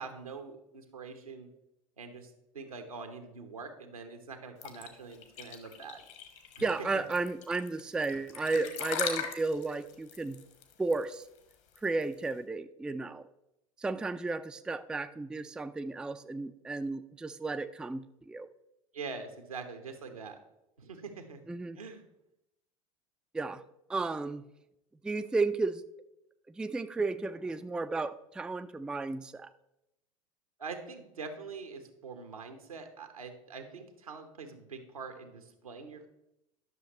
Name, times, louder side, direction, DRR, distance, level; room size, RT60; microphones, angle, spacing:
voice 1, 0.0-1.5 2.0-6.0 6.6-6.7 8.6-8.7 18.9-20.4 20.8-21.4 21.8-22.0 30.6-36.1, right 4 dB, 80° right, 6 dB, 1.2 m, -44 dB
sound 1, 4.6-12.3, left 8 dB, 60° left, 1.3 m, -39 dB
voice 2, 6.6-10.4 10.8-11.3 11.8-13.2 13.8-18.5 21.5-21.8 23.3-23.6 23.9-24.4 25.0-25.8 26.5-29.5, right 3 dB, 5° right, 10 dB, 0.3 m, -33 dB
11.0 x 6.4 x 3.1 m, 0.85 s
figure-of-eight pair, 75°, 18 cm